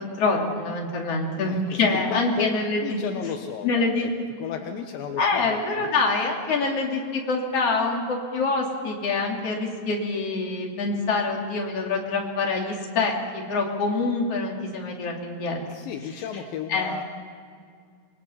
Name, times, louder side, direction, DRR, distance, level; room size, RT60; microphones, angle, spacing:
voice 1, 0.2-3.0 3.6-4.2 5.2-15.6 16.7-17.0, left 3 dB, 35° left, 0 dB, 3.1 m, -25 dB
voice 2, 1.5-2.5 2.8-4.1 4.4-5.9 15.7-17.0, left 8 dB, 80° left, 5 dB, 2.1 m, -34 dB
28.0 x 21.0 x 5.7 m, 2.1 s
omnidirectional pair, 5.6 m